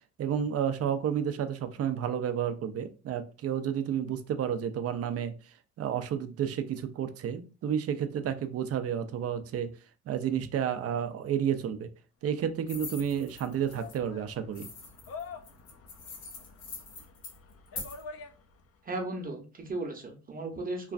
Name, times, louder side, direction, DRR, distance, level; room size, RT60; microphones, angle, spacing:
voice 1, 0.2-5.3 5.8-9.7 10.1-11.9 12.2-14.7, right 8 dB, 50° right, 10 dB, 0.5 m, -31 dB
sound 1, 12.4-18.8, left 5 dB, 50° left, 0.5 m, -48 dB
sound 2, 12.7-14.0 14.5-18.0, left 4 dB, 75° left, 1.5 m, -43 dB
voice 2, 18.8-20.9, right 2 dB, 30° right, 3 dB, 0.8 m, -36 dB
3.1 x 2.4 x 2.4 m, 0.34 s
cardioid pair, 90°, 30 cm